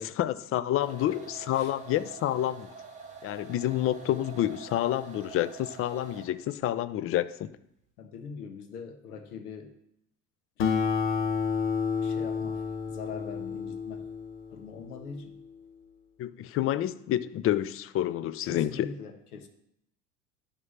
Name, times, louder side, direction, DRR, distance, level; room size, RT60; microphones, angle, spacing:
voice 1, 0.2-2.7 3.2-7.5 16.2-18.9, left 12 dB, 30° left, 15 dB, 0.5 m, -29 dB
sound 1, 0.8-6.5, right 5 dB, 15° right, 1.8 m, -46 dB
voice 2, 0.9-1.7 8.0-9.7 12.0-14.1 14.5-15.4 18.4-19.5, left 5 dB, 70° left, 8 dB, 1.4 m, -42 dB
Acoustic guitar, 10.6-15.4, left 6 dB, 55° left, 1.5 m, -30 dB
11.0 x 3.7 x 7.2 m, 0.78 s
figure-of-eight pair, 70°, 47 cm